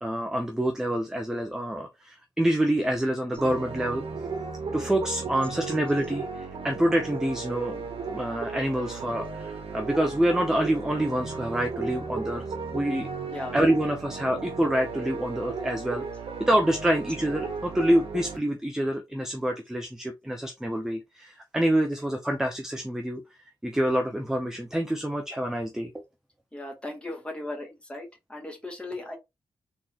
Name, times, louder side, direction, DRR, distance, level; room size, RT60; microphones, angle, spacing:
voice 1, 0.0-4.0 4.7-12.5 12.7-13.1 13.5-16.0 16.4-23.2 23.6-26.0, right 1 dB, 5° right, 0.5 m, -27 dB
sound 1, 3.4-18.4, right 4 dB, 90° right, 1.0 m, -35 dB
voice 2, 26.5-29.2, left 2 dB, 10° left, 1.1 m, -37 dB
3.8 x 3.0 x 2.8 m
wide cardioid pair, 165°, 9 cm